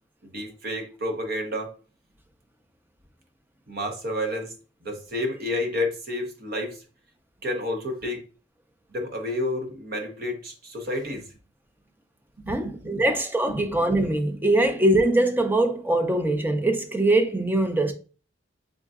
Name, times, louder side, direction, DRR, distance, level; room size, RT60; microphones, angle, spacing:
voice 1, 0.3-1.7 3.7-4.5 4.8-6.8 7.4-8.2 8.9-11.3 12.4-13.0 13.5-13.6, left 1 dB, 55° right, 0.8 m, -30 dB
voice 2, 12.5-17.9, right 1 dB, 10° right, 0.4 m, -22 dB
3.8 x 3.6 x 2.3 m
head